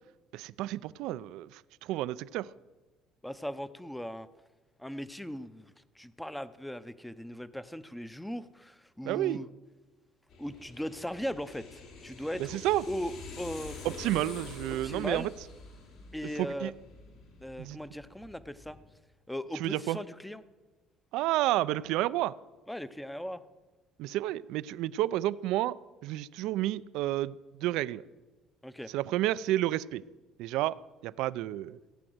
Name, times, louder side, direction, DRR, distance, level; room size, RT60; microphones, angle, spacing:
voice 1, 0.3-2.5 9.0-9.4 12.4-12.8 13.8-15.3 16.4-16.7 17.6-17.8 19.6-20.0 21.1-22.4 24.0-25.8 26.0-28.0 28.9-30.0 30.4-30.8 31.0-31.8, right 15 dB, 75° right, 18 dB, 0.4 m, -30 dB
voice 2, 3.2-4.3 4.8-9.5 10.4-12.6 12.9-14.0 14.7-15.3 16.1-16.7 17.4-18.8 19.3-20.4 22.7-23.4 28.6-28.9, equal, 5° left, 14 dB, 0.6 m, -38 dB
sound 1, 10.3-18.8, left 3 dB, 75° left, 4.2 m, -47 dB
16.0 x 8.9 x 7.8 m, 1.2 s
cardioid pair, 125°, 0 cm